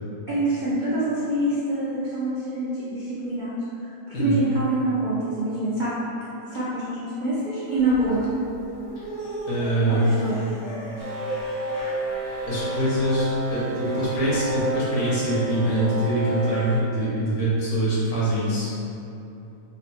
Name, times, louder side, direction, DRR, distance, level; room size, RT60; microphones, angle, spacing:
voice 1, 0.3-3.5 4.2-5.9 6.5-8.4 9.9-10.4, right 1 dB, 80° right, -10 dB, 0.4 m, -25 dB
sound 1, 7.7-15.1, right 1 dB, 60° left, 0.9 m, -38 dB
voice 2, 9.5-10.1 12.5-18.7, right 1 dB, 80° left, -9 dB, 1.5 m, -24 dB
sound 2, 11.0-16.8, right 1 dB, 60° right, 0.9 m, -30 dB
4.1 x 2.1 x 2.8 m, 2.8 s
omnidirectional pair, 1.6 m